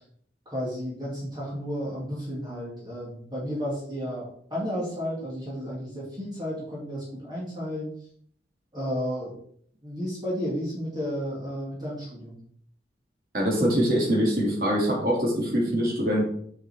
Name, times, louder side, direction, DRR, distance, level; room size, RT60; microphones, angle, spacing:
voice 1, 0.5-7.9 8.7-9.3 9.8-12.4, equal, 25° right, -6 dB, 2.7 m, -32 dB
voice 2, 13.3-16.3, equal, 55° right, -3 dB, 3.3 m, -23 dB
7.3 x 5.8 x 4.6 m, 0.62 s
head